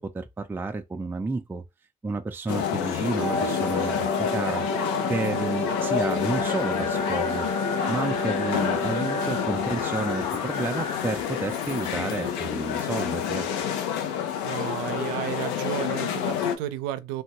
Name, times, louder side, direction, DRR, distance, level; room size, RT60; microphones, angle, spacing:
voice 1, 0.0-1.6 2.0-4.7 5.1-7.5 7.9-13.5, right 3 dB, 15° right, 0.4 m, -31 dB
sound 1, 2.5-16.6, left 9 dB, 85° left, 0.6 m, -28 dB
Wind instrument woodwind instrument, 3.2-9.9, equal, 35° left, 0.8 m, -31 dB
sound 2, 6.4-12.6, left 4 dB, 65° left, 1.4 m, -38 dB
voice 2, 14.4-17.2, right 13 dB, 85° right, 0.4 m, -32 dB
3.3 x 2.1 x 2.9 m
supercardioid pair, 80°, 16 cm